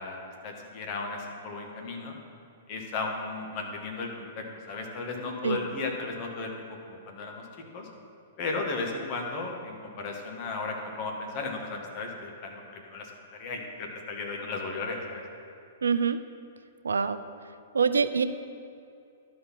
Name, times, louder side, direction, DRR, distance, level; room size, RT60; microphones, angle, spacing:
voice 1, 0.0-2.1 2.7-6.5 6.9-7.5 7.7-7.9 8.4-15.2, left 3 dB, 40° left, 1 dB, 1.6 m, -35 dB
voice 2, 15.8-16.2 16.8-17.2 17.7-18.2, right 5 dB, 80° right, 10 dB, 0.4 m, -24 dB
12.0 x 4.3 x 5.8 m, 2.6 s
hypercardioid pair, 115°, 0 cm